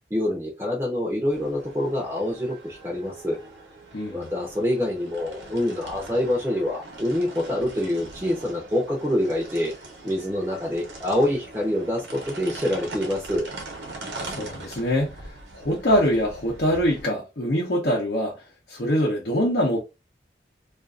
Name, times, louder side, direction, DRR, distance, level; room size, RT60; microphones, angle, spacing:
voice 1, 0.1-3.4 4.1-9.7 10.0-13.5, left 1 dB, 15° right, 0.6 m, -26 dB
sound 1, 1.3-17.0, right 2 dB, 85° right, 0.9 m, -41 dB
voice 2, 3.9-4.3 14.1-15.1 15.5-18.4 18.7-19.8, equal, 65° left, 0.7 m, -24 dB
2.5 x 2.4 x 2.3 m
head